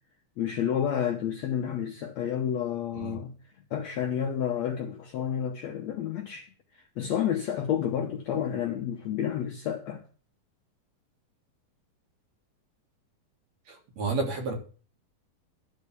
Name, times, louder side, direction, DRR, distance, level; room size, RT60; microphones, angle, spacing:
voice 1, 0.4-3.3 3.7-10.0, left 9 dB, 70° left, 1.7 m, -30 dB
voice 2, 13.7-14.5, right 3 dB, 55° right, 3.0 m, -31 dB
12.0 x 4.8 x 8.1 m
omnidirectional pair, 4.2 m